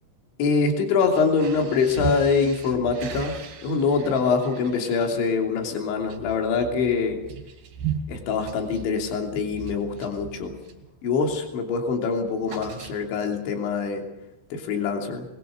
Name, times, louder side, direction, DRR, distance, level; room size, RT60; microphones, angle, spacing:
voice 1, 0.4-3.4 3.6-7.2 8.1-10.5 11.0-14.0 14.5-15.3, left 5 dB, 75° left, 3 dB, 5.3 m, -24 dB
sound 1, 1.0-10.9 11.3-11.6 11.8-13.4, right 7 dB, 55° right, 4.8 m, -37 dB
24.5 x 21.0 x 6.7 m, 0.93 s
omnidirectional pair, 5.3 m